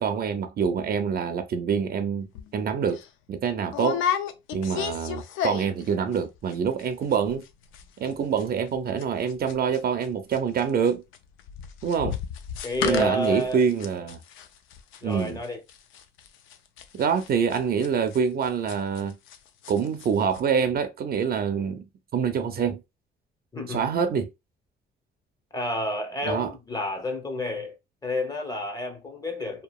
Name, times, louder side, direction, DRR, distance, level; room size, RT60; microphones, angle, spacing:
voice 1, 0.0-3.0 3.3-4.0 4.5-7.4 8.0-11.0 11.8-12.2 12.8-14.2 15.0-15.4 16.9-19.2 19.7-21.8 22.1-22.8 23.7-24.3 26.2-26.5, right 6 dB, 50° right, 0.5 m, -26 dB
sound 1, 2.3-2.5 2.9-3.1 3.7-5.9 6.1-6.5 6.8-6.9 7.1-7.5 7.7-10.1 10.3-19.4 19.6-20.1 20.3-20.4, left 9 dB, 90° left, 0.4 m, -33 dB
voice 2, 12.6-13.6 15.0-15.6 23.5-23.9 25.5-27.8 28.0-29.6, left 1 dB, 20° left, 0.8 m, -30 dB
2.8 x 2.4 x 2.3 m
cardioid pair, 90°, 20 cm